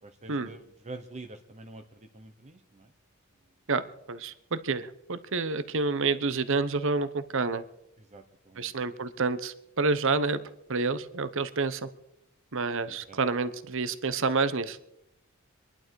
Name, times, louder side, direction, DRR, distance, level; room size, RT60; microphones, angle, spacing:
voice 1, 0.0-2.9 8.1-8.7 12.9-13.2, right 2 dB, 30° right, 5 dB, 1.0 m, -46 dB
voice 2, 4.1-7.6 8.6-10.4 10.7-11.9 12.5-14.8, right 4 dB, 65° right, 14 dB, 1.0 m, -28 dB
25.5 x 11.5 x 4.8 m, 0.82 s
head